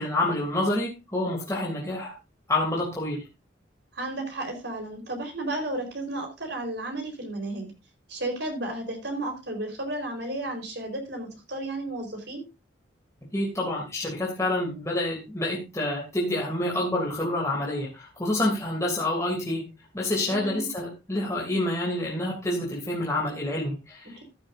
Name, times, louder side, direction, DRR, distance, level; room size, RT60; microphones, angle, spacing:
voice 1, 0.0-2.1 2.5-3.3 13.3-19.6 19.9-24.2, left 1 dB, 15° left, -3 dB, 2.9 m, -28 dB
voice 2, 3.9-7.7 8.1-12.4 20.2-20.7 24.0-24.2, right 1 dB, 65° right, 3 dB, 4.5 m, -33 dB
14.0 x 11.5 x 2.7 m, 0.25 s
head